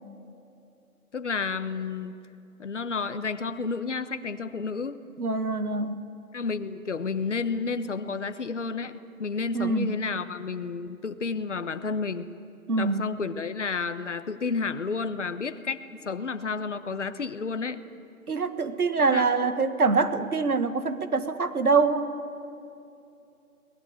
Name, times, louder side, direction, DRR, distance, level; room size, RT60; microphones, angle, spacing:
voice 1, 1.1-2.2 2.6-5.0 6.3-12.3 12.7-15.8 16.0-17.8 19.1-19.3, left 4 dB, 55° left, 11 dB, 1.2 m, -31 dB
voice 2, 5.2-6.0 9.5-10.0 12.7-13.0 18.3-22.1, right 4 dB, 80° right, 10 dB, 1.8 m, -24 dB
22.0 x 19.5 x 8.9 m, 2.7 s
figure-of-eight pair, 165°, 44 cm